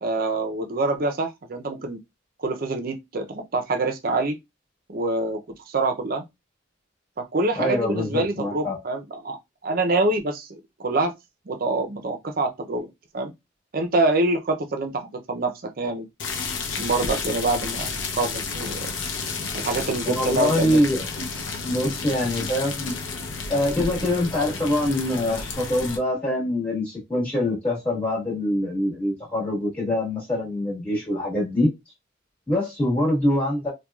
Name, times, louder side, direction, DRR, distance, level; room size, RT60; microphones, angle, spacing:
voice 1, 0.0-2.0 2.4-4.4 4.9-5.4 5.7-6.2 7.2-9.4 9.6-11.1 11.5-12.9 13.1-13.3 13.7-16.1 16.8-18.9 19.5-20.8, right 2 dB, 50° right, 0.6 m, -25 dB
voice 2, 7.5-8.8 20.0-21.0 21.6-22.9 23.5-31.7 32.5-33.7, left 1 dB, 10° left, 1.4 m, -24 dB
sound 1, 16.2-26.0, left 4 dB, 75° left, 0.6 m, -31 dB
4.5 x 2.2 x 2.3 m
head